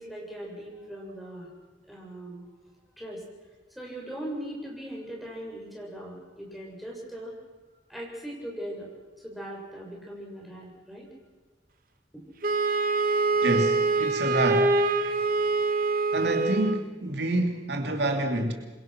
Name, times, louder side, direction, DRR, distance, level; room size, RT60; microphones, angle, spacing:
voice 1, 0.0-1.5 1.9-2.4 3.0-3.2 3.8-7.3 7.9-8.9 9.2-11.1 12.1-12.2, right 1 dB, ahead, -4 dB, 7.1 m, -39 dB
Wind instrument woodwind instrument, 12.4-16.8, right 3 dB, 50° right, 1.5 m, -25 dB
voice 2, 13.4-14.8 16.1-18.5, right 1 dB, 70° right, 4 dB, 2.6 m, -27 dB
27.0 x 22.5 x 6.1 m, 1.2 s
head